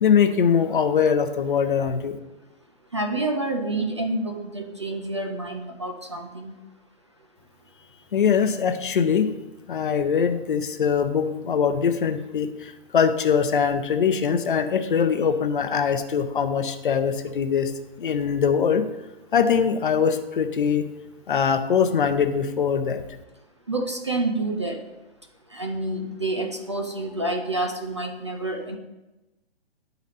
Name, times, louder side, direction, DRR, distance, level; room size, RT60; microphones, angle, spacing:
voice 1, 0.0-2.2 8.1-9.3 9.7-17.7 18.0-18.8 19.3-20.8 21.3-23.0, left 7 dB, 50° left, 9 dB, 0.7 m, -22 dB
voice 2, 2.9-6.5 23.7-24.8 25.5-28.8, right 2 dB, 30° right, 4 dB, 0.4 m, -28 dB
10.5 x 4.0 x 4.1 m, 1.0 s
hypercardioid pair, 170°, 32 cm